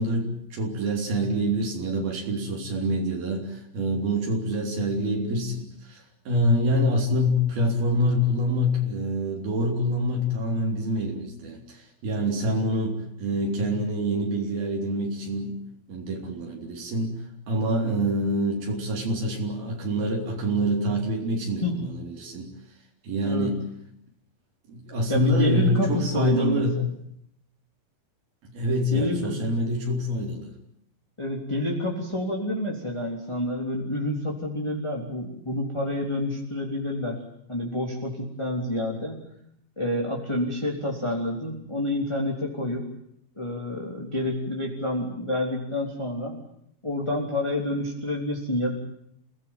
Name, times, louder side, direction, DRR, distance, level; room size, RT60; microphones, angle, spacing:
voice 1, 0.0-15.6 15.9-17.2 17.5-22.5 23.0-23.6 24.7-26.9 28.4-30.5, equal, 75° right, 1 dB, 5.5 m, -26 dB
voice 2, 25.0-26.7 28.9-29.4 31.2-37.2 37.5-39.2 39.8-42.8 43.3-46.4 46.8-48.7, left 1 dB, 10° left, -1 dB, 3.2 m, -28 dB
28.5 x 18.5 x 9.1 m, 0.74 s
omnidirectional pair, 4.3 m